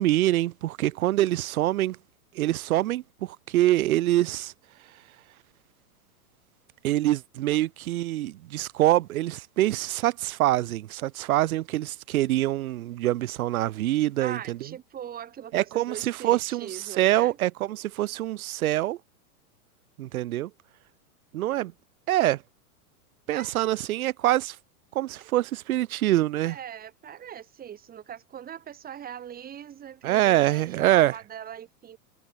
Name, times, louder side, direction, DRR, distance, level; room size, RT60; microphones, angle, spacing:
voice 1, 0.0-2.0 2.3-4.5 6.8-14.6 15.5-19.0 20.0-20.5 21.3-21.7 22.1-22.4 23.3-24.6 24.9-26.6 30.0-31.1, right 15 dB, 70° right, 1.7 m, -25 dB
voice 2, 14.2-17.4 23.3-23.7 25.2-25.3 26.4-32.0, right 9 dB, 20° right, 3.0 m, -40 dB
supercardioid pair, 145°, 44 cm